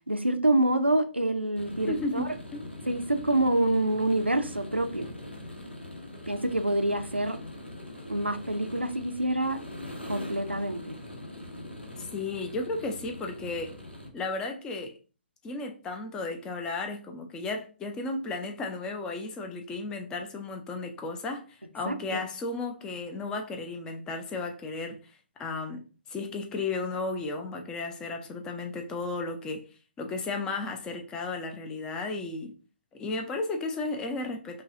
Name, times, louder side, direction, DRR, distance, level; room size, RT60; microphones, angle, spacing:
voice 1, 0.1-2.3 2.9-5.1 6.3-7.4 8.1-9.6 10.1-11.0 21.9-22.2, right 1 dB, 90° right, 0.5 m, -26 dB
sound 1, 1.5-14.1, left 1 dB, 80° left, 1.0 m, -42 dB
voice 2, 1.9-2.6 12.0-13.7 14.1-14.9 15.4-25.0 25.4-25.8 26.1-29.7 30.0-32.5 32.9-34.6, left 3 dB, 10° left, 0.4 m, -34 dB
5.4 x 2.3 x 2.6 m
figure-of-eight pair, 125°, 6 cm